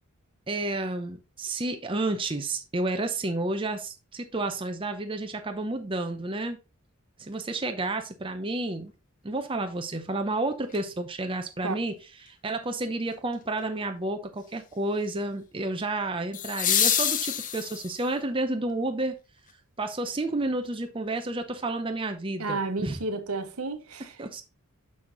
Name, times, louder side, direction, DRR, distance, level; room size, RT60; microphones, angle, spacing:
voice 1, 0.5-6.6 7.2-8.9 9.2-19.2 19.8-23.0 24.0-24.4, right 2 dB, 25° right, 0.6 m, -31 dB
sound 1, 10.7-10.8 16.3-18.1 20.3-20.4, left 9 dB, 35° left, 0.6 m, -26 dB
voice 2, 22.4-24.1, right 3 dB, 85° right, 1.1 m, -31 dB
6.3 x 5.7 x 3.9 m
head